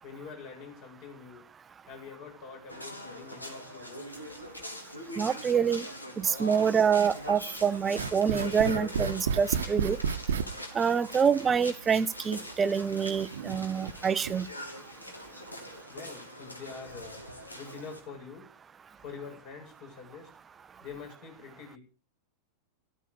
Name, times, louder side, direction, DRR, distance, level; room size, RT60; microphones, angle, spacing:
voice 1, 0.0-1.4 1.9-4.4 15.9-17.3 17.5-18.5 19.0-20.3 20.8-21.8, left 5 dB, 45° left, 2 dB, 7.9 m, -45 dB
sound 1, 2.7-18.0, left 1 dB, 85° left, 3.0 m, -42 dB
voice 2, 5.2-5.8 6.2-10.0 10.7-14.5, right 7 dB, 20° right, 18 dB, 0.7 m, -26 dB
sound 2, 8.0-10.5 11.5-11.6 12.3-12.4 13.2-13.9 14.2-14.4, right 7 dB, 65° right, 1.1 m, -31 dB
14.0 x 14.0 x 4.9 m, 0.37 s
figure-of-eight pair, 90°, 0 cm